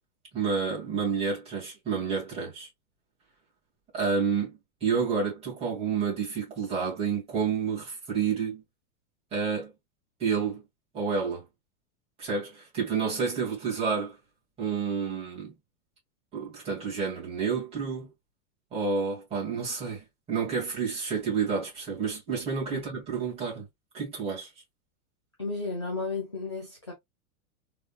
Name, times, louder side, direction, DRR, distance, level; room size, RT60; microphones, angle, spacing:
voice 1, 0.3-2.7 3.9-8.6 9.3-9.7 10.2-10.6 10.9-11.4 12.2-14.2 14.6-15.5 16.3-18.1 18.7-23.7 23.9-24.5, right 5 dB, 15° right, 2.0 m, -29 dB
voice 2, 25.4-26.9, left 3 dB, 20° left, 0.3 m, -33 dB
3.9 x 3.6 x 2.3 m
supercardioid pair, 175°, 44 cm